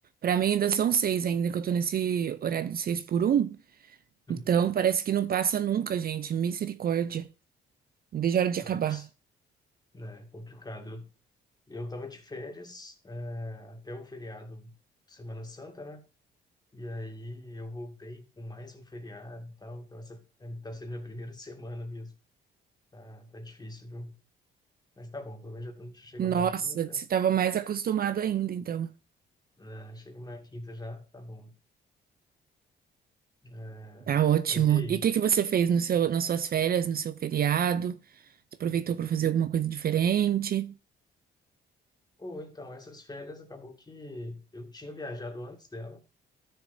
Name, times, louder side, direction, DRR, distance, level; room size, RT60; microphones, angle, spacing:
voice 1, 0.2-3.6 4.3-7.3 8.1-9.0 26.2-28.9 34.1-38.0 38.6-40.7, right 9 dB, 50° right, 0.5 m, -26 dB
voice 2, 4.3-4.6 8.6-9.1 9.9-11.1 11.7-14.7 15.1-16.0 16.7-22.1 22.9-24.1 25.0-27.0 29.5-31.5 33.4-34.2 34.5-35.0 42.2-46.0, left 1 dB, 20° left, 2.1 m, -42 dB
13.0 x 6.7 x 2.7 m
cardioid pair, 90°, 20 cm